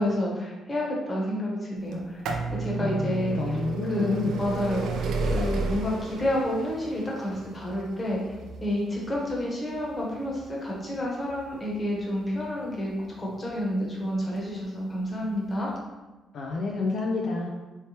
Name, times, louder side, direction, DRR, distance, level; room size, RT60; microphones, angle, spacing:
voice 1, 0.0-2.2 2.5-3.6 3.9-8.3 8.6-15.7, left 1 dB, 25° left, -3 dB, 1.0 m, -29 dB
sound 1, 1.9-13.6 14.4-14.5 15.4-15.5 15.7-15.8, right 3 dB, 80° right, 0.4 m, -33 dB
voice 2, 2.8-4.4 16.3-17.5, left 3 dB, 65° left, -1 dB, 0.4 m, -29 dB
3.2 x 3.2 x 2.8 m, 1.2 s
cardioid pair, 90°, 0 cm